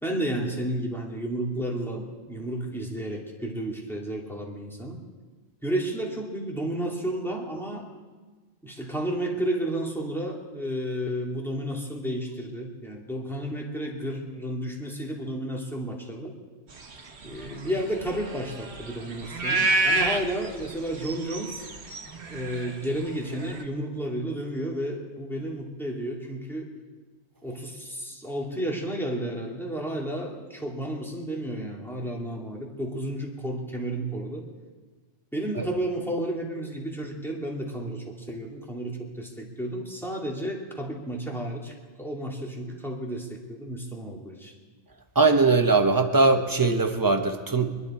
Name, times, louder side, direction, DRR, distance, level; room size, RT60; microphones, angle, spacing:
voice 1, 0.0-5.0 5.6-7.9 8.6-16.4 17.2-21.6 22.3-26.7 27.4-34.5 35.3-41.7 42.0-44.5, right 1 dB, ahead, -2 dB, 2.4 m, -32 dB
sound 1, 16.8-23.6, right 2 dB, 65° right, 1.6 m, -29 dB
voice 2, 45.1-47.8, right 3 dB, 20° right, 5 dB, 1.0 m, -21 dB
25.0 x 11.0 x 4.3 m, 1.4 s
omnidirectional pair, 1.2 m